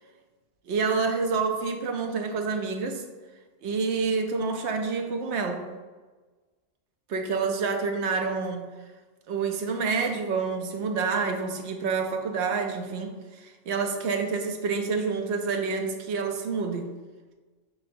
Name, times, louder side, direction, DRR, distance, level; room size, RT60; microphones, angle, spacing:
voice 1, 0.7-3.0 3.6-5.6 7.1-8.7 9.3-16.9, right 4 dB, 70° right, 4 dB, 0.9 m, -28 dB
4.9 x 3.7 x 2.5 m, 1.3 s
omnidirectional pair, 1.2 m